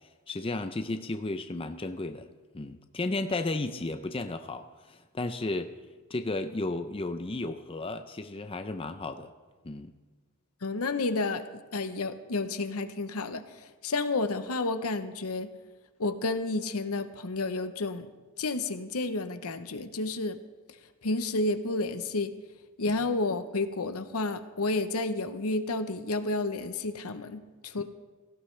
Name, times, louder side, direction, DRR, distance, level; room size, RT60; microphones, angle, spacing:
voice 1, 0.3-2.3 2.5-5.7 6.1-9.3 9.6-9.9 22.9-23.0 27.8-27.9, left 2 dB, 25° left, 8 dB, 0.5 m, -34 dB
voice 2, 10.6-15.5 16.0-18.1 18.4-20.4 21.0-22.3 22.8-27.8, left 2 dB, 75° left, 10 dB, 0.9 m, -31 dB
17.0 x 16.0 x 3.3 m, 1.3 s
head